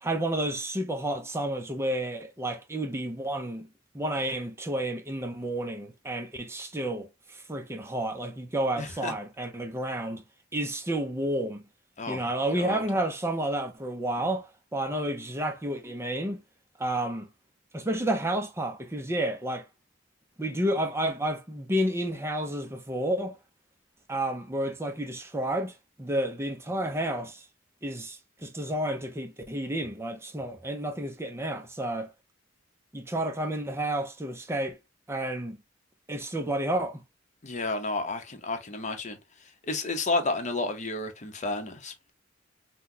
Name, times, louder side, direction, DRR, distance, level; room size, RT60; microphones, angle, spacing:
voice 1, 0.0-3.7 3.9-10.2 10.5-11.6 12.1-16.4 16.8-17.3 17.7-19.7 20.4-23.4 24.1-27.4 27.8-32.1 32.9-34.8 35.1-35.6 36.1-37.0, right 1 dB, 15° right, 0.6 m, -31 dB
voice 2, 8.8-9.1 12.0-12.2 12.5-12.8 37.4-39.2 39.6-42.1, left 3 dB, 40° left, 0.8 m, -31 dB
5.9 x 2.3 x 2.7 m
head